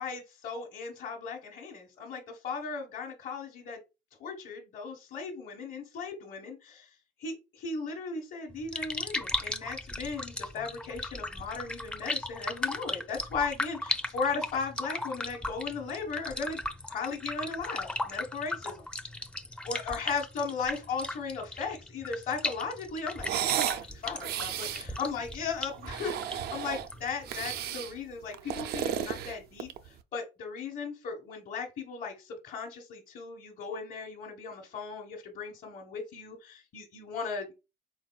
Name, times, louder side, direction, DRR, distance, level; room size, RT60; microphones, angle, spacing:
voice 1, 0.0-3.8 4.2-6.9 7.2-16.6 16.9-18.8 19.6-29.7 30.1-37.5, left 5 dB, 55° left, -3 dB, 1.1 m, -37 dB
sound 1, 8.5-27.7, left 1 dB, 5° left, 0.4 m, -37 dB
sound 2, 23.2-23.8 24.2-24.9 25.7-26.9 27.3-27.9 28.3-29.9, right 10 dB, 70° right, 0.4 m, -33 dB
4.5 x 4.0 x 2.3 m, 0.27 s
cardioid pair, 110°, 17 cm